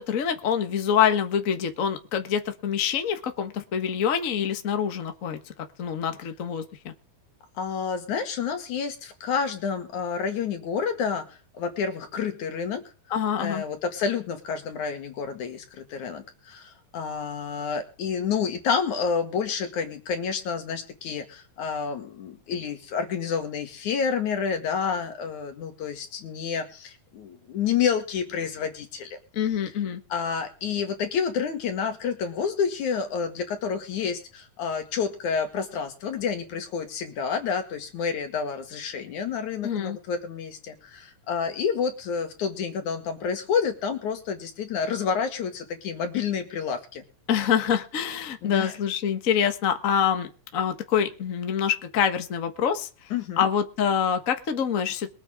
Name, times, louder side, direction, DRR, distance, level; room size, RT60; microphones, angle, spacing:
voice 1, 0.0-5.4 5.8-6.9 13.1-13.6 29.3-30.0 39.6-40.0 47.3-52.9 53.4-55.1, left 8 dB, 80° left, 7 dB, 0.7 m, -26 dB
voice 2, 7.6-12.8 13.4-29.2 30.1-47.0 48.4-48.7 53.1-53.5, left 6 dB, 60° left, 6 dB, 3.3 m, -29 dB
22.5 x 8.8 x 3.7 m, 0.36 s
omnidirectional pair, 3.9 m